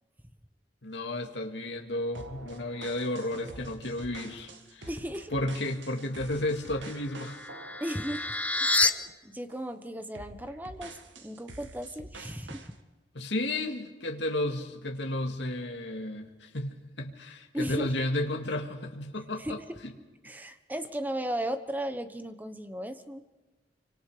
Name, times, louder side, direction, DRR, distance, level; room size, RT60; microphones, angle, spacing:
voice 1, 0.8-4.9 5.3-7.4 13.1-19.9, left 1 dB, 65° left, 3 dB, 2.2 m, -33 dB
sound 1, 2.1-9.1 9.5-9.7 10.1-12.7, right 2 dB, 80° right, 1.9 m, -47 dB
voice 2, 4.9-5.3 7.8-8.3 8.6-8.9 9.2-12.7 17.5-17.9 19.4-19.8 20.2-23.2, equal, 10° right, 9 dB, 1.1 m, -36 dB
sound 2, 6.7-8.9, left 3 dB, 10° left, 0.7 m, -29 dB
26.5 x 25.0 x 5.1 m, 1.2 s
head